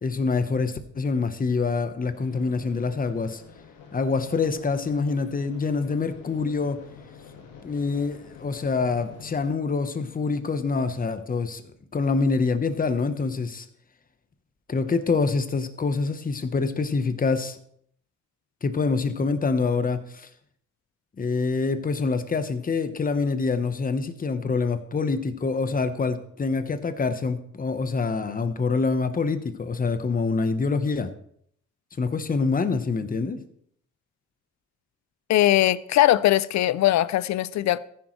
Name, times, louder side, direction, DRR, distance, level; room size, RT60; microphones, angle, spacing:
voice 1, 0.0-3.4 3.9-6.8 7.6-11.6 11.9-13.7 14.7-17.6 18.6-20.3 21.2-31.1 32.0-33.4, left 4 dB, 30° left, 1.1 m, -26 dB
sound 1, 2.1-9.5, left 7 dB, 90° left, 2.0 m, -46 dB
voice 2, 35.3-37.8, left 14 dB, 65° left, 0.6 m, -20 dB
14.5 x 10.5 x 3.2 m
cardioid pair, 90°, 30 cm